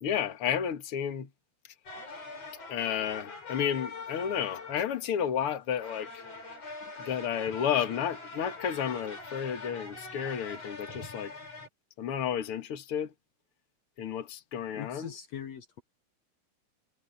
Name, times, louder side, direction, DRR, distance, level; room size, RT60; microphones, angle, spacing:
voice 1, 0.0-1.3 2.7-6.3 7.0-11.3 12.0-13.1 14.0-15.1, left 8 dB, 55° left, 1.5 m, -32 dB
sound 1, 1.9-11.7, left 3 dB, 35° left, 6.0 m, -43 dB
voice 2, 14.7-15.8, left 10 dB, 80° left, 1.5 m, -41 dB
omnidirectional pair, 4.9 m